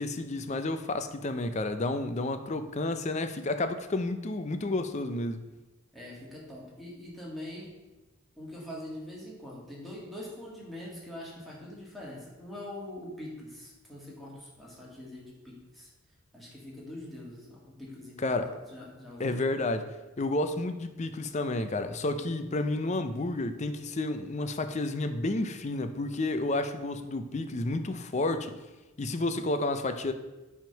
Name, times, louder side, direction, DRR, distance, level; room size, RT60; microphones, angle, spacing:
voice 1, 0.0-5.4 18.2-18.5 19.2-19.9 20.2-28.5 29.0-30.1, left 2 dB, 35° left, 9 dB, 0.5 m, -31 dB
voice 2, 5.9-7.7 8.4-15.9 16.3-19.4, left 1 dB, ahead, -6 dB, 1.9 m, -43 dB
8.9 x 3.6 x 5.7 m, 1.1 s
head